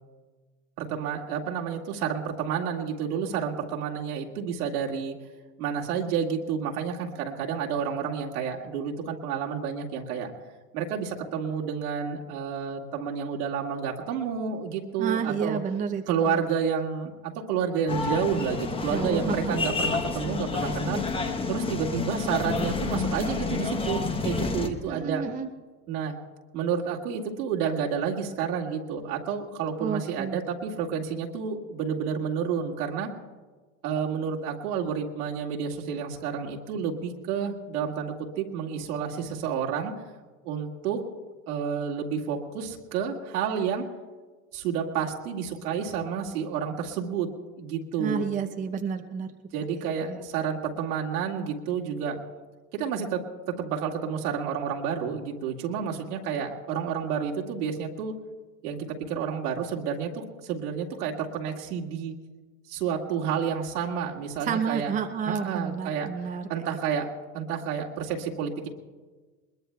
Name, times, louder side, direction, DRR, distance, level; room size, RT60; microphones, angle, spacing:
voice 1, 0.8-5.2 5.6-10.3 10.7-15.6 16.1-21.0 21.5-25.2 25.9-26.1 26.5-33.1 33.8-39.9 40.4-41.0 41.5-43.9 44.5-47.3 47.6-48.3 49.5-52.2 52.7-53.2 53.5-58.1 58.6-62.1 62.7-64.9 65.2-66.1 66.5-67.1 67.3-68.7, right 7 dB, 80° right, -1 dB, 2.1 m, -30 dB
voice 2, 15.0-16.4 18.9-19.6 24.9-25.5 29.8-30.5 48.0-49.3 50.0-50.2 64.4-66.8, right 6 dB, 20° right, 6 dB, 0.6 m, -30 dB
sound 1, 17.9-24.7, left 4 dB, 10° left, 0.9 m, -29 dB
21.5 x 21.0 x 2.3 m, 1.3 s
supercardioid pair, 120°, 45 cm